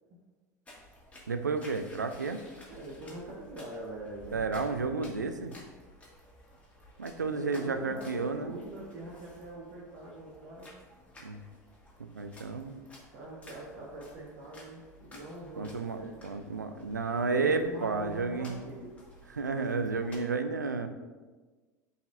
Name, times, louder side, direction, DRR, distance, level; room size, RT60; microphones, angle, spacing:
sound 1, 0.6-20.2, left 1 dB, 15° left, 2.0 m, -54 dB
voice 1, 1.3-2.4 4.3-5.6 7.0-8.6 11.2-11.5 12.0-12.8 15.6-18.6 19.3-20.9, right 4 dB, 90° right, 9 dB, 0.4 m, -32 dB
voice 2, 2.7-4.4 7.2-10.7 13.1-16.2 17.1-18.9, right 2 dB, 60° right, -5 dB, 1.4 m, -43 dB
10.5 x 4.1 x 2.6 m, 1.3 s
figure-of-eight pair, 75°, 9 cm